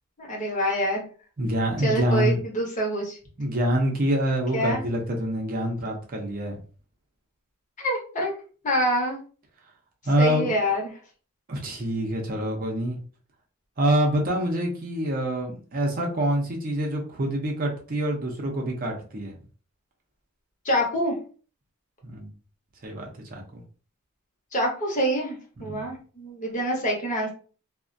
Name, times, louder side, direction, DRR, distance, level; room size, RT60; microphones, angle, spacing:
voice 1, 0.2-1.0 1.8-3.2 4.5-4.8 7.8-9.2 10.2-10.9 20.6-21.1 24.5-27.3, equal, 35° left, 0 dB, 0.7 m, -26 dB
voice 2, 1.4-2.4 3.4-6.6 10.1-10.5 11.5-13.0 13.8-19.3 22.1-22.3 22.8-23.0 23.3-23.4 25.6-25.9, equal, 40° right, 0 dB, 0.5 m, -26 dB
2.4 x 2.1 x 2.5 m, 0.40 s
head